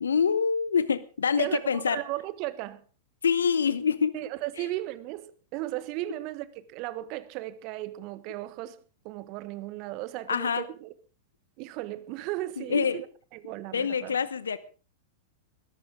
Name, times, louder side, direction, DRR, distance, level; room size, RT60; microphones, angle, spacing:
voice 1, 0.0-2.0 3.2-4.1 4.6-4.7 10.3-10.6 12.6-13.0 13.7-14.6, left 6 dB, 75° left, 0.9 m, -26 dB
voice 2, 1.4-2.8 4.1-8.8 9.0-10.9 11.6-13.0 13.3-14.2, right 16 dB, 45° right, 1.3 m, -36 dB
21.0 x 14.0 x 3.8 m
figure-of-eight pair, 100°, 0 cm